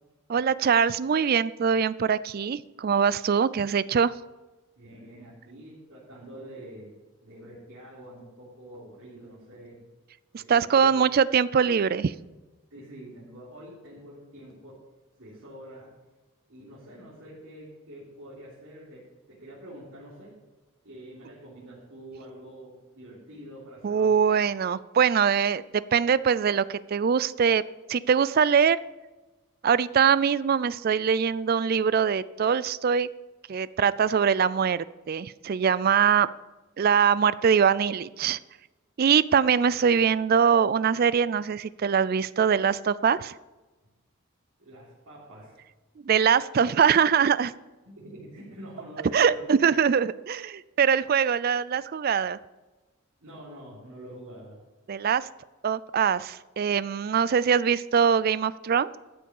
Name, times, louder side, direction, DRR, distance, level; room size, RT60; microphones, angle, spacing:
voice 1, 0.3-4.1 10.5-12.1 23.8-28.8 29.6-33.1 33.5-36.3 36.8-38.4 39.0-43.3 46.1-47.5 49.1-52.4 54.9-55.3 55.6-59.0, right 7 dB, 45° right, 18 dB, 0.3 m, -23 dB
voice 2, 4.7-9.8 10.4-10.9 12.7-14.8 15.2-15.9 16.5-20.3 20.8-24.1 44.6-45.6 47.9-49.5 53.2-54.6, right 1 dB, 80° right, -10 dB, 3.4 m, -46 dB
13.0 x 6.9 x 5.5 m, 1.2 s
head